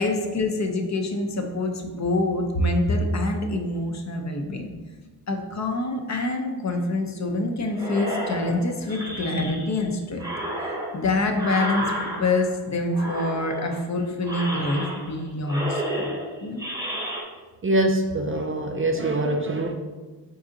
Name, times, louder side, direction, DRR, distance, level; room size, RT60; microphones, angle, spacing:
voice 1, 0.0-4.7 5.3-10.2 10.6-16.2 16.4-16.6, left 2 dB, 45° left, 4 dB, 0.6 m, -26 dB
sound 1, 7.7-9.8 10.2-12.6 12.9-13.8 14.2-15.2 15.5-17.2, equal, 10° right, 0.8 m, -31 dB
voice 2, 17.6-19.7, right 1 dB, 35° right, 4 dB, 0.4 m, -24 dB
4.7 x 2.7 x 3.8 m, 1.3 s
cardioid pair, 85°, 39 cm